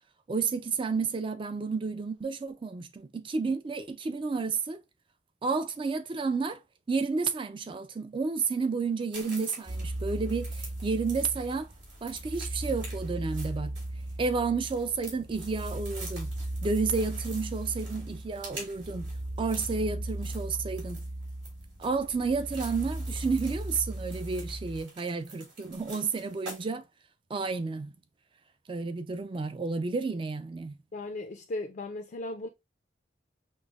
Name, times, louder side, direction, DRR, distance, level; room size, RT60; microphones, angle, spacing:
voice 1, 0.3-4.8 5.4-6.6 6.9-11.7 12.0-13.7 14.2-16.3 16.6-19.1 19.4-21.1 21.8-26.8 27.3-27.9 28.7-30.8, right 4 dB, 25° right, 0.3 m, -31 dB
sound 1, 9.1-26.7, right 2 dB, 75° right, 1.9 m, -47 dB
sound 2, 9.7-24.8, right 1 dB, 55° right, 1.5 m, -37 dB
voice 2, 30.9-32.5, left 2 dB, 45° left, 0.4 m, -36 dB
5.2 x 2.0 x 2.3 m
head